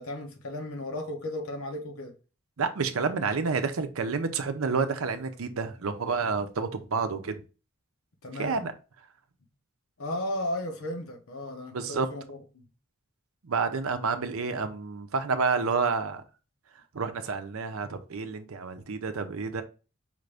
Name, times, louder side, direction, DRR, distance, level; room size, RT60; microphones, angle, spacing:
voice 1, 0.0-2.1 8.2-8.6 10.0-12.6, left 1 dB, 80° left, 1.0 m, -35 dB
voice 2, 2.6-7.4 8.4-8.7 11.7-12.1 13.4-16.2 16.9-19.6, right 4 dB, 75° right, 0.6 m, -29 dB
5.1 x 2.6 x 3.3 m
head